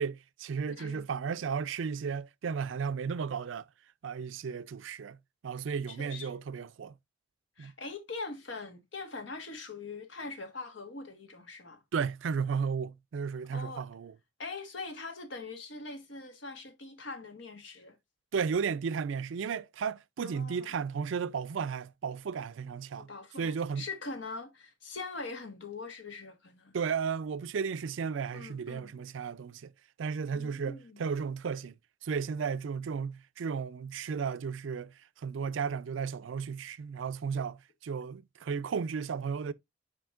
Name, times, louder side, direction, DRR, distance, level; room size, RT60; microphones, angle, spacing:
voice 1, 0.0-3.6 4.0-5.2 5.4-6.9 7.6-7.7 11.9-14.1 18.3-23.1 23.4-23.8 26.7-29.7 30.0-31.7 32.0-39.5, right 6 dB, 85° right, 0.4 m, -34 dB
voice 2, 0.7-1.0 5.9-6.4 7.6-11.8 13.5-13.9 14.4-18.0 20.2-20.8 22.9-26.7 28.3-28.9 30.3-31.0, left 3 dB, 75° left, 1.4 m, -42 dB
7.7 x 5.0 x 2.4 m
head